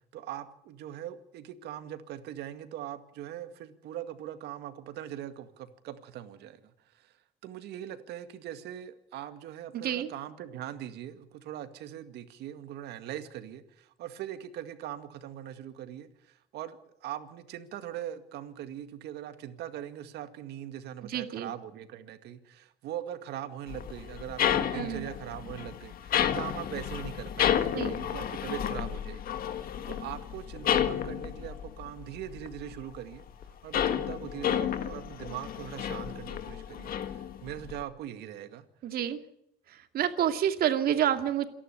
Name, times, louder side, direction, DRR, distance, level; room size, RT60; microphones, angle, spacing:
voice 1, 0.1-7.2 7.4-33.2 33.6-38.7, right 11 dB, 80° right, 9 dB, 2.2 m, -41 dB
voice 2, 9.7-10.1 21.0-21.5 24.7-25.1 27.7-28.0 38.8-39.2 39.7-41.5, right 10 dB, 65° right, 8 dB, 2.4 m, -29 dB
sound 1, 23.7-32.8 33.1-37.8, left 9 dB, 60° left, 1.9 m, -31 dB
28.0 x 11.0 x 8.7 m, 0.75 s
cardioid pair, 110°, 17 cm